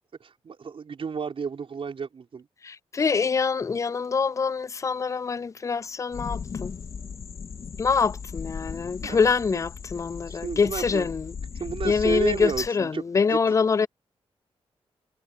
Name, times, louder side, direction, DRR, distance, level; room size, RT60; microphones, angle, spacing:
voice 1, 0.2-2.5 9.0-9.2 9.5-9.6 10.3-11.1 11.6-13.0 13.3-13.4, right 6 dB, 60° right, 4.8 m, -32 dB
voice 2, 2.6-6.8 7.8-11.3 11.8-13.9, left 5 dB, 30° left, 0.3 m, -25 dB
sound 1, 6.1-12.7, left 6 dB, 60° left, 2.8 m, -37 dB
cardioid pair, 85°, 11 cm